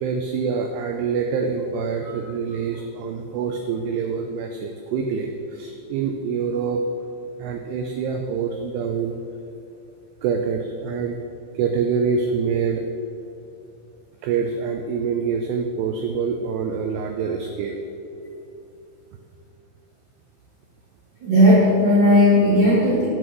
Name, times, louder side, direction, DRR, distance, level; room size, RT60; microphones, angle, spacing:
voice 1, 0.0-6.8 7.4-9.2 10.2-11.2 11.5-12.9 14.2-17.8, right 5 dB, 85° right, 4 dB, 2.3 m, -25 dB
voice 2, 21.2-23.1, equal, 70° right, -9 dB, 1.1 m, -16 dB
11.0 x 6.2 x 6.0 m, 2.7 s
omnidirectional pair, 5.4 m